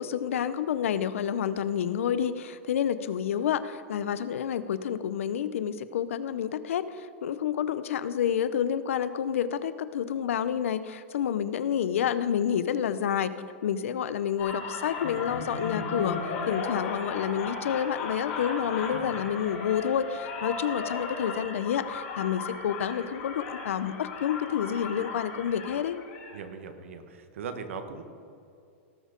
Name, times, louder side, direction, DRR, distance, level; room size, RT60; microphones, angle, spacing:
voice 1, 0.0-13.3 13.6-26.0, left 9 dB, 85° left, 14 dB, 0.7 m, -29 dB
sound 1, 14.4-26.4, left 4 dB, 35° left, 2.7 m, -36 dB
voice 2, 26.3-28.0, right 5 dB, 75° right, 8 dB, 1.3 m, -39 dB
18.0 x 6.5 x 5.1 m, 2.5 s
supercardioid pair, 175°, 7 cm